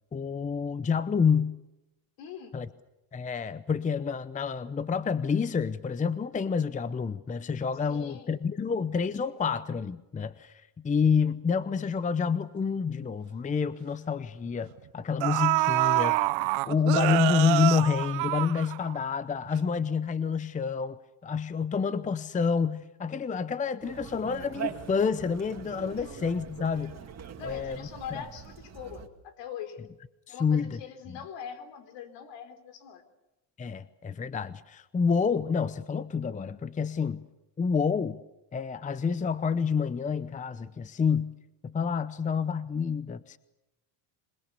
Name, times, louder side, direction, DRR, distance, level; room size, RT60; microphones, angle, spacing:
voice 1, 0.1-1.6 2.5-2.7 3.1-16.2 16.6-26.9 27.4-27.8 28.1-28.2 30.3-30.8 31.1-31.2 33.6-37.2 37.6-38.2 38.5-41.4 41.6-43.4, left 6 dB, 15° left, 15 dB, 0.8 m, -28 dB
voice 2, 2.2-2.5 7.9-8.3 26.0-26.1 27.4-29.8 30.3-33.0, left 8 dB, 70° left, 8 dB, 4.2 m, -42 dB
sound 1, 13.0-13.1 13.5-13.7 14.7-14.8 15.2-19.1 19.5-19.6, right 21 dB, 80° right, 0.9 m, -26 dB
Conversation, 23.8-29.1, right 8 dB, 35° right, 2.3 m, -42 dB
26.5 x 20.5 x 7.0 m, 0.96 s
cardioid pair, 120°, 45 cm